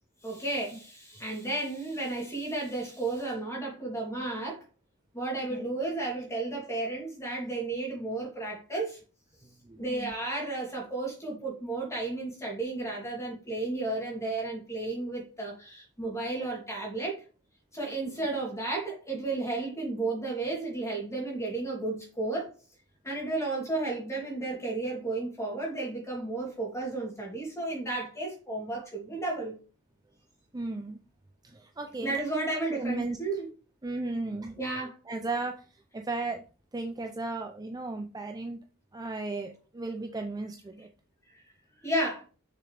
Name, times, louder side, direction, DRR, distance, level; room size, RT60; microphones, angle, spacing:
voice 1, 0.2-4.6 5.1-9.0 9.8-17.2 17.7-22.5 23.0-29.5 32.0-33.5 34.6-34.9 41.8-42.2, right 2 dB, 15° left, 2.9 m, -33 dB
voice 2, 9.6-10.1 18.0-18.1 30.5-31.0 31.4-32.2 32.5-33.2 33.8-34.6 35.1-35.6 35.9-36.4 36.7-38.6 38.9-40.9, right 2 dB, 15° right, 0.5 m, -35 dB
6.7 x 6.1 x 3.4 m
head